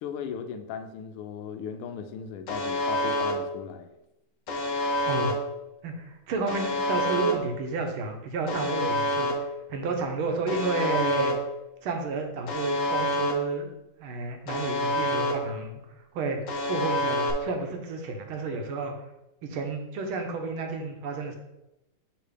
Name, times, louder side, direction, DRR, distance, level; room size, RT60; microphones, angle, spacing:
voice 1, 0.0-3.9, left 7 dB, 90° left, 8 dB, 1.5 m, -37 dB
Alarm, 2.5-3.3 4.5-5.3 6.5-7.3 8.5-9.3 10.5-11.3 12.5-13.3 14.5-15.3 16.5-17.3, left 1 dB, 65° left, 0.8 m, -27 dB
voice 2, 5.0-5.3 5.8-11.3 11.8-13.7 14.0-15.8 16.1-16.4 16.7-18.9 19.4-21.4, right 4 dB, 80° right, 4 dB, 1.7 m, -31 dB
6.8 x 3.0 x 4.9 m, 0.92 s
omnidirectional pair, 2.4 m